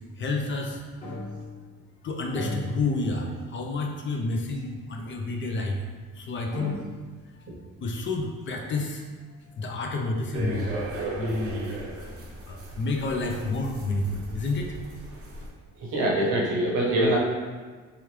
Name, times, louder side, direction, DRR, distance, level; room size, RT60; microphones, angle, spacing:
voice 1, 0.2-0.8 2.0-5.8 6.2-6.8 7.8-9.0 9.6-10.8 11.2-11.7 12.0-12.1 12.5-14.7, left 3 dB, 40° left, 2 dB, 0.5 m, -29 dB
sound 1, 1.0-1.9 2.3-3.5 3.9-4.0 4.9-5.0 6.1-6.2 6.5-7.3, left 1 dB, 20° left, 1.2 m, -37 dB
sound 2, 10.3-15.5, right 2 dB, 50° right, 0.7 m, -37 dB
voice 2, 15.8-17.2, right 1 dB, 75° right, -2 dB, 0.9 m, -24 dB
3.0 x 2.4 x 3.2 m, 1.4 s
cardioid pair, 90°, 30 cm